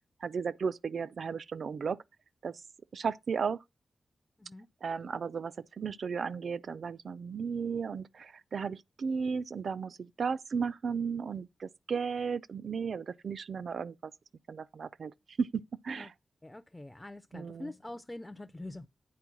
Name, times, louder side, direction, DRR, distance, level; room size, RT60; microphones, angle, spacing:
voice 1, 0.2-2.0 2.4-2.6 2.9-3.6 4.8-14.1 14.5-16.1 17.3-17.7, right 5 dB, 60° right, 0.4 m, -35 dB
voice 2, 16.4-18.9, left 1 dB, 10° left, 0.4 m, -44 dB
9.4 x 4.5 x 6.0 m
wide cardioid pair, 175°, 0 cm